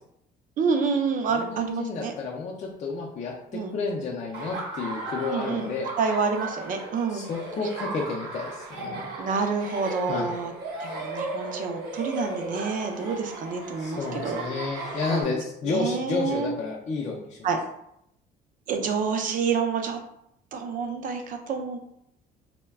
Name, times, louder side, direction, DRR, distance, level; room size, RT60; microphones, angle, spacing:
voice 1, 0.6-2.1 3.5-3.7 5.3-5.7 6.0-7.3 9.2-10.5 10.8-14.4 15.1-15.4 15.6-16.5 17.4-17.6 18.7-20.0 20.5-21.8, right 5 dB, 50° right, 5 dB, 0.5 m, -28 dB
voice 2, 1.3-3.3 3.7-5.9 7.1-9.1 10.1-10.3 13.8-17.4, left 4 dB, 45° left, -3 dB, 0.5 m, -31 dB
Laughter, 4.3-15.2, right 2 dB, 90° right, 0.8 m, -35 dB
2.2 x 2.1 x 3.4 m, 0.76 s
cardioid pair, 110°, 17 cm